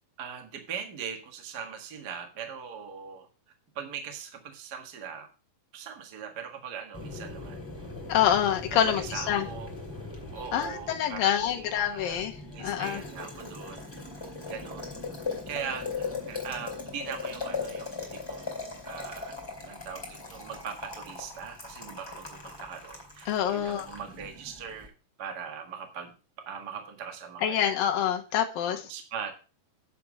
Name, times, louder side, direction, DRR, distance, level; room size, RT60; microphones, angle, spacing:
voice 1, 0.2-3.3 3.7-5.3 5.7-7.6 8.7-9.7 10.3-13.9 14.2-15.0 15.5-19.4 19.6-24.9 25.2-26.1 26.4-27.6 27.9-28.0 28.6-29.4, right 7 dB, 60° right, 4 dB, 1.0 m, -40 dB
Boiling, 6.9-24.9, left 4 dB, 5° left, 2.7 m, -39 dB
voice 2, 8.1-9.5 10.5-13.0 23.3-23.9 27.4-28.8, left 10 dB, 70° left, 4 dB, 2.5 m, -26 dB
9.4 x 5.9 x 6.1 m, 0.34 s
omnidirectional pair, 4.8 m